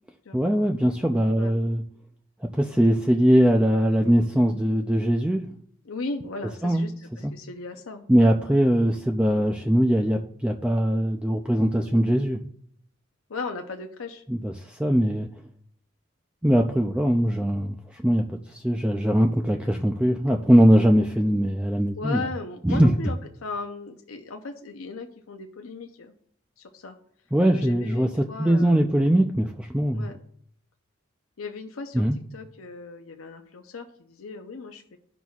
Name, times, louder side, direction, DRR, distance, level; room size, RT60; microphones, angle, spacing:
voice 1, 0.3-1.8 2.5-5.4 6.6-6.9 7.2-7.3 8.1-12.4 14.3-15.3 16.4-22.2 22.6-23.0 27.3-30.1 31.9-32.2, equal, 5° right, 3 dB, 0.3 m, -21 dB
voice 2, 5.8-8.3 9.3-9.4 11.8-12.1 13.3-14.2 14.8-15.0 22.0-26.1 26.6-26.9 27.5-29.1 29.9-30.2 31.4-35.0, left 3 dB, 80° left, 4 dB, 0.6 m, -37 dB
13.5 x 6.0 x 2.4 m, 0.65 s
head